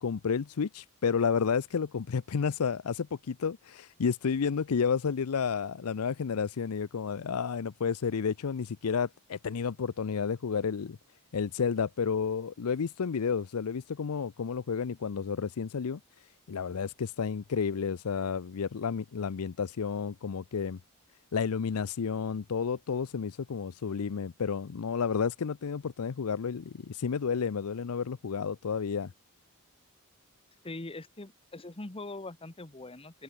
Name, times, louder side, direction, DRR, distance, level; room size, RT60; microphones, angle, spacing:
voice 1, 0.0-11.0 11.3-16.0 16.5-20.8 21.3-29.1, left 6 dB, 75° left, 0.5 m, -31 dB
voice 2, 30.6-33.2, left 2 dB, 25° left, 1.2 m, -42 dB
open air
head